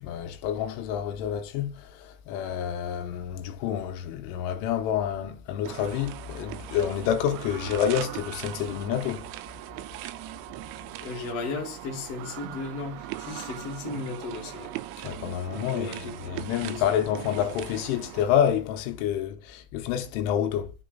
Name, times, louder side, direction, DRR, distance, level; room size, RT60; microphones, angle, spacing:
voice 1, 0.0-9.3 15.0-20.7, left 9 dB, 85° left, 3.2 m, -28 dB
sound 1, 5.7-18.2, right 15 dB, 85° right, 2.8 m, -40 dB
voice 2, 11.0-14.7 15.6-16.4 16.7-16.9, left 3 dB, 40° left, 2.2 m, -35 dB
12.0 x 4.0 x 3.8 m
omnidirectional pair, 5.7 m